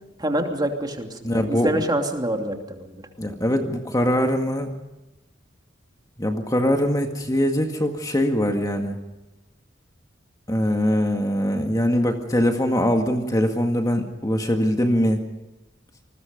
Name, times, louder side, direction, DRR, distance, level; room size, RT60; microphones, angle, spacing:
voice 1, 0.2-3.0, right 1 dB, 20° right, 3 dB, 2.8 m, -26 dB
voice 2, 1.2-1.8 3.2-4.7 6.2-9.0 10.5-15.2, equal, 20° left, 4 dB, 2.0 m, -22 dB
28.5 x 21.0 x 5.3 m, 1.0 s
head